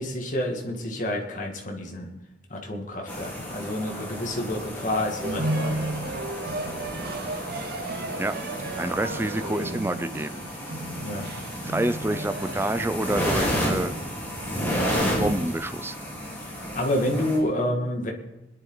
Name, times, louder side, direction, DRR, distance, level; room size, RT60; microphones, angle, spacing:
voice 1, 0.0-2.1 2.5-5.8 11.0-11.3 16.4-18.1, left 1 dB, 45° left, 1 dB, 2.3 m, -29 dB
sound 1, 3.1-17.4, equal, 10° left, 3.9 m, -32 dB
sound 2, 5.2-15.4, right 2 dB, 55° right, 0.7 m, -35 dB
voice 2, 8.8-10.4 11.6-13.9 15.0-16.0, right 1 dB, 15° right, 10 dB, 0.6 m, -28 dB
24.5 x 11.0 x 4.0 m, 0.98 s
head